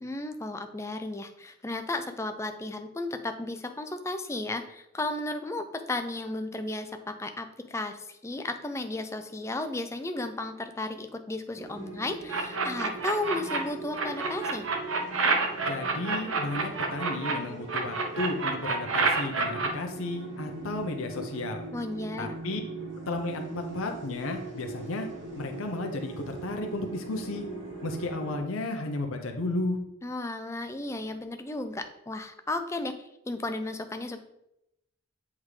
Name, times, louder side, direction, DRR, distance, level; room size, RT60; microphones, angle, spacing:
voice 1, 0.0-14.7 21.7-22.3 30.0-34.2, left 2 dB, 15° left, 7 dB, 0.3 m, -34 dB
sound 1, 11.6-28.4, right 3 dB, 55° right, 1.2 m, -41 dB
sound 2, 12.3-13.6 13.9-17.3 17.7-19.7, right 4 dB, 70° right, 0.8 m, -28 dB
voice 2, 15.6-21.6 22.2-22.6 23.1-25.1 25.4-27.4 27.8-29.8, left 2 dB, 75° left, 4 dB, 0.7 m, -33 dB
8.2 x 3.6 x 3.2 m, 0.85 s
head